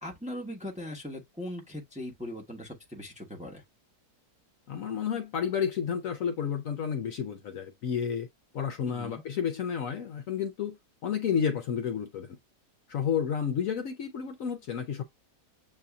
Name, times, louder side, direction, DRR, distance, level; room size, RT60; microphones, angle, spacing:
voice 1, 0.0-3.6 8.9-9.2, left 1 dB, 5° right, 1.0 m, -39 dB
voice 2, 4.7-8.3 8.5-10.8 11.0-12.3 12.9-15.0, left 7 dB, 65° left, 0.9 m, -31 dB
7.6 x 2.7 x 2.3 m
omnidirectional pair, 1.7 m